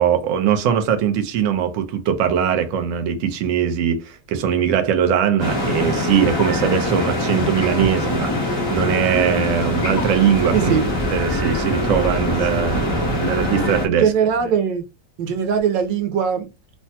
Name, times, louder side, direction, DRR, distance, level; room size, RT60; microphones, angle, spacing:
voice 1, 0.0-10.7 11.1-14.1, right 8 dB, 65° right, 0.8 m, -21 dB
sound 1, 5.4-13.9, left 1 dB, 20° left, 0.9 m, -23 dB
voice 2, 10.5-10.9 14.0-14.8 15.2-16.5, right 7 dB, 90° right, 1.4 m, -20 dB
3.2 x 2.2 x 2.7 m
omnidirectional pair, 1.9 m